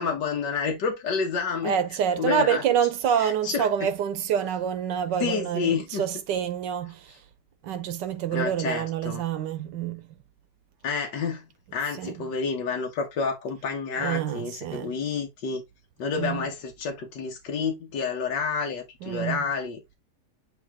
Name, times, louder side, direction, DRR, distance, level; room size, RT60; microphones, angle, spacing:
voice 1, 0.0-1.7 2.2-2.6 3.2-3.9 5.2-6.0 8.3-9.2 10.8-11.5 11.7-15.6 16.0-19.8, left 5 dB, 85° left, 1.8 m, -29 dB
voice 2, 1.6-7.1 7.6-10.0 12.0-12.1 14.0-14.9 16.1-16.4 19.0-19.4, right 9 dB, 85° right, 1.5 m, -27 dB
8.9 x 3.0 x 3.5 m
omnidirectional pair, 1.8 m